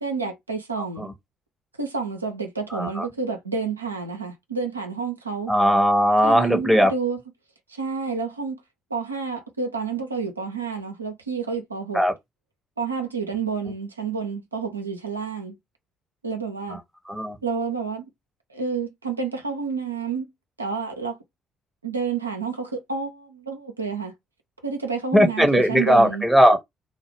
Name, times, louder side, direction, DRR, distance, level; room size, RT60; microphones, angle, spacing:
voice 1, 0.0-1.1 1.8-5.5 6.2-7.2 7.7-8.6 8.9-12.0 12.8-15.6 16.2-16.8 17.4-18.1 18.5-20.3 20.6-21.2 21.8-24.1 24.6-26.3, right 5 dB, 85° right, 0.4 m, -29 dB
voice 2, 2.7-3.1 5.5-6.9 11.9-12.1 16.7-16.8 17.1-17.4 25.1-26.6, equal, 5° right, 0.9 m, -18 dB
2.2 x 2.0 x 3.2 m
figure-of-eight pair, 45°, 0 cm